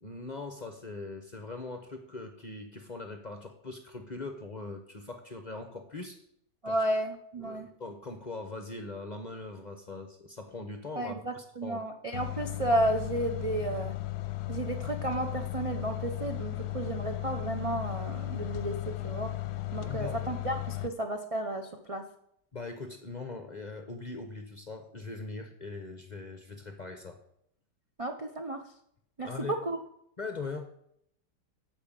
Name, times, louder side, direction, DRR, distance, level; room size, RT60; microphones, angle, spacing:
voice 1, 0.0-6.2 6.7-6.8 7.4-11.9 19.8-20.2 22.5-27.2 29.2-29.6 30.2-30.8, left 3 dB, 40° left, 5 dB, 0.7 m, -41 dB
voice 2, 6.6-7.7 11.0-13.9 14.5-18.7 19.0-19.3 19.7-22.0 28.0-28.6 29.2-29.8, right 1 dB, 50° right, 4 dB, 0.4 m, -32 dB
sound 1, 12.1-20.9, left 16 dB, 70° left, 1.1 m, -36 dB
8.7 x 5.6 x 7.5 m, 0.71 s
omnidirectional pair, 1.8 m